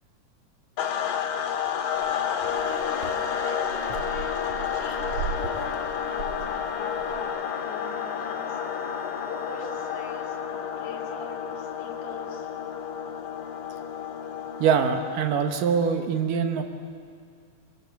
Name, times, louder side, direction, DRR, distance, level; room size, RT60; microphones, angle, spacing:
sound 1, 0.8-15.5, left 8 dB, 80° left, 2.9 m, -30 dB
sound 2, 2.0-7.2, right 5 dB, 60° right, 2.7 m, -38 dB
voice 1, 2.7-8.6 9.3-12.5, left 4 dB, 65° left, 1 dB, 3.3 m, -42 dB
sound 3, 2.7-10.5, right 1 dB, 35° right, 1.5 m, -46 dB
voice 2, 14.6-16.6, right 7 dB, 80° right, 6 dB, 3.1 m, -23 dB
24.5 x 21.5 x 7.4 m, 2.3 s
omnidirectional pair, 3.9 m